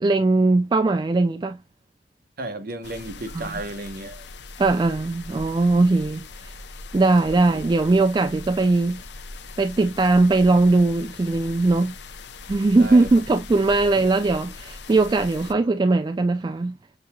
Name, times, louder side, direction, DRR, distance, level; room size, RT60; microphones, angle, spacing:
voice 1, 0.0-1.6 3.3-3.5 4.6-6.5 6.9-9.0 9.6-11.9 12.5-16.7, right 3 dB, 25° right, 0.3 m, -20 dB
voice 2, 2.4-4.2 7.5-7.7 12.8-13.1 14.0-14.1 15.4-15.6, right 2 dB, 55° right, 1.0 m, -33 dB
distant rain, 2.8-15.5, left 3 dB, 75° left, 0.6 m, -40 dB
6.6 x 2.8 x 2.2 m
head